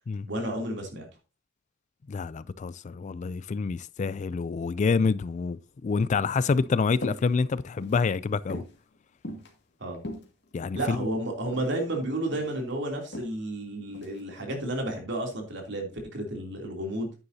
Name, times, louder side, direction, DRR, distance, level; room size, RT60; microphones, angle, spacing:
voice 1, 0.3-1.1 9.8-10.0 10.7-17.1, right 1 dB, 65° right, 3.0 m, -32 dB
voice 2, 2.1-8.6 10.5-11.1, left 4 dB, 40° left, 0.3 m, -27 dB
sound 1, 7.0-7.3 7.6-8.0 8.5-8.8 9.2-9.5 9.9-11.0 11.5-11.8 12.1-12.6 13.1-13.3 13.9-14.2, left 1 dB, 60° left, 2.1 m, -38 dB
9.8 x 9.3 x 2.7 m
head